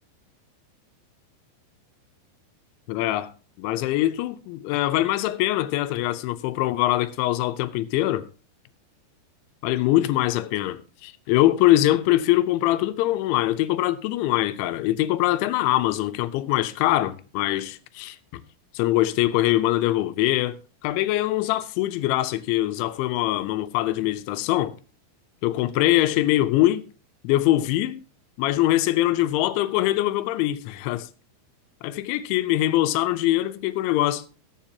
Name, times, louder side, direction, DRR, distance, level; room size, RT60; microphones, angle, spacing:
voice 1, 2.9-3.3 3.6-8.3 9.6-18.2 18.7-20.6 20.8-24.8 25.4-26.9 27.2-28.0 28.4-31.1 32.1-34.2, left 15 dB, 85° left, 3.0 m, -23 dB
22.0 x 7.3 x 2.8 m
omnidirectional pair, 5.3 m